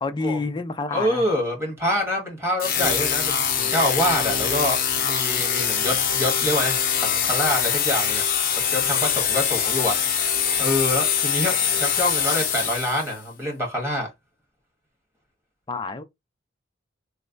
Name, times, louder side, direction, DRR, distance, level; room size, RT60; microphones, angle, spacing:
voice 1, 0.0-1.2 15.7-16.0, left 3 dB, 25° left, 0.4 m, -28 dB
voice 2, 0.9-8.2 8.7-10.0 10.6-14.1, left 1 dB, 15° right, 1.5 m, -26 dB
sound 1, 2.6-13.2, left 8 dB, 50° left, 0.7 m, -23 dB
3.1 x 2.1 x 3.8 m
head